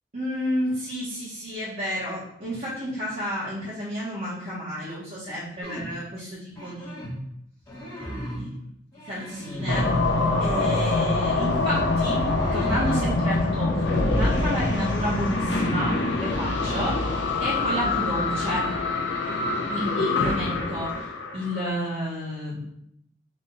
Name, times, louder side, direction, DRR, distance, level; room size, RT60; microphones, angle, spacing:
voice 1, 0.1-7.1 8.1-8.7 9.1-9.9 10.4-12.3 12.5-17.1 17.4-18.7 19.7-22.6, equal, 45° right, -12 dB, 1.7 m, -31 dB
sound 1, 5.6-6.0 6.5-7.2 7.6-8.6 8.9-10.8 12.0-13.4, equal, 20° left, 1.7 m, -34 dB
sound 2, 9.7-21.7, left 2 dB, 85° left, 0.7 m, -25 dB
3.7 x 3.4 x 4.0 m, 0.74 s
head